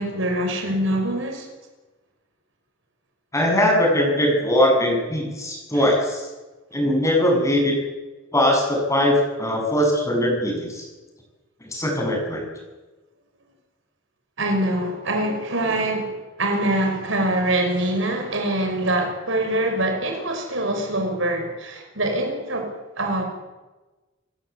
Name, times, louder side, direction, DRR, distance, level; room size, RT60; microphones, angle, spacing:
voice 1, 0.0-1.5 5.7-5.9 14.4-23.2, right 1 dB, 70° right, 5.5 m, -24 dB
voice 2, 3.3-6.2 6.7-7.7 8.3-10.8 11.7-12.4, left 1 dB, 15° left, 7.4 m, -20 dB
29.0 x 15.5 x 8.3 m
head